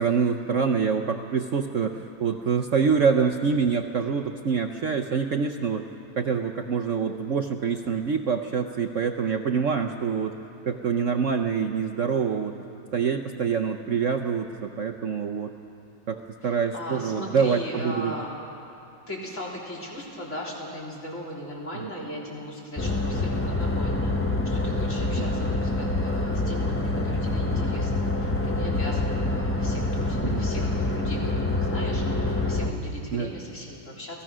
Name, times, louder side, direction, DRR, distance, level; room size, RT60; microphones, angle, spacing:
voice 1, 0.0-5.9 6.2-10.4 10.7-12.6 12.9-15.5 16.1-18.1 21.8-21.9 25.2-25.3 30.2-30.5 33.1-33.3, right 6 dB, 60° right, 6 dB, 0.8 m, -26 dB
voice 2, 16.4-18.3 19.1-24.1 24.4-34.2, left 1 dB, 35° left, -3 dB, 3.9 m, -38 dB
sound 1, 22.8-32.7, left 2 dB, 15° left, 0.5 m, -26 dB
29.0 x 17.5 x 6.2 m, 2.8 s
omnidirectional pair, 2.1 m